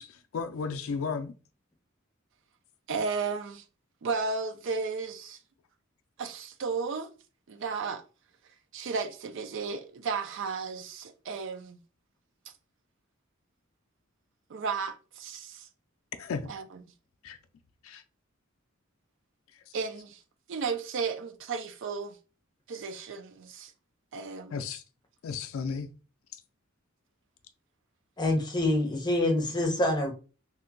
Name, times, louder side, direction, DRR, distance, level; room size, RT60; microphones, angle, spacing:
voice 1, 0.0-1.3 16.2-16.5 17.2-17.4 17.8-18.0 24.5-24.8 25.2-25.9, left 5 dB, 85° left, 0.4 m, -34 dB
voice 2, 2.9-3.6 4.0-5.4 6.2-7.1 7.5-8.0 8.7-11.8 14.5-15.7 16.5-16.6 19.7-20.2 20.5-22.2 22.7-23.7 24.1-24.6, right 5 dB, 65° right, 0.4 m, -34 dB
voice 3, 28.2-30.1, left 1 dB, 20° left, 0.8 m, -26 dB
2.7 x 2.2 x 3.7 m
head